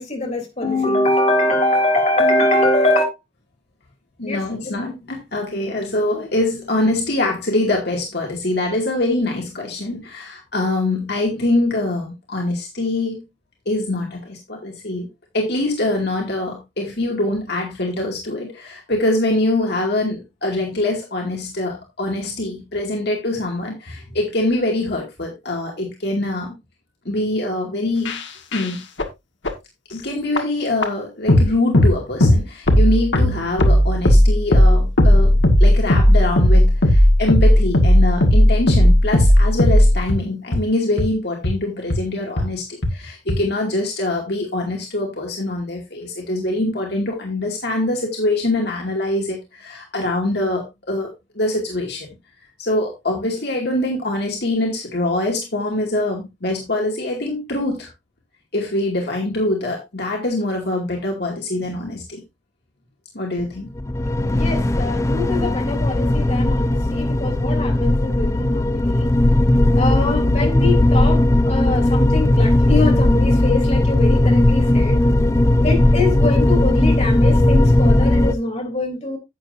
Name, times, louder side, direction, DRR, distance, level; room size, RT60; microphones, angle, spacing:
voice 1, 0.0-3.1 4.3-4.4 64.3-69.1 69.7-75.0 75.6-79.2, left 2 dB, 35° left, 3.3 m, -23 dB
voice 2, 4.2-13.2 13.7-15.1 15.3-26.5 27.1-28.2 28.5-28.8 29.9-35.3 35.6-51.1 51.4-52.1 52.6-57.9 58.5-62.2 63.1-63.7, left 2 dB, 60° left, 2.3 m, -24 dB
sound 1, 28.0-28.2 28.5-28.7 29.0-29.1 29.4-29.5 30.4-30.5 30.8-30.9 31.3-31.5 31.7-31.9 32.2-32.4 32.7-40.2 40.5-40.6 41.0-41.1 41.4-41.5 41.9-42.0 42.4-42.5 42.8-42.9 43.3-43.4, left 1 dB, 75° left, 1.7 m, -14 dB
sound 2, 63.7-78.3, left 1 dB, 15° left, 0.4 m, -17 dB
11.0 x 8.6 x 2.7 m
head